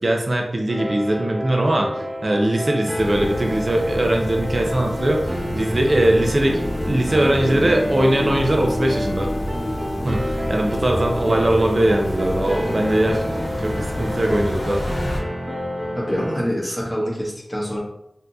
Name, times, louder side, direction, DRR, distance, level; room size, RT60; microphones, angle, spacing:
voice 1, 0.0-9.3 10.0-13.2 13.6-14.8, right 1 dB, 60° right, 1 dB, 0.5 m, -21 dB
sound 1, 0.7-16.4, equal, 30° right, 1.0 m, -29 dB
sound 2, 2.9-15.2, equal, 80° left, 0.8 m, -30 dB
sound 3, 3.9-14.5, left 1 dB, 45° left, 0.3 m, -32 dB
voice 2, 15.9-17.8, equal, 15° left, -4 dB, 1.2 m, -25 dB
3.6 x 2.8 x 2.3 m, 0.79 s
wide cardioid pair, 50°, 0 cm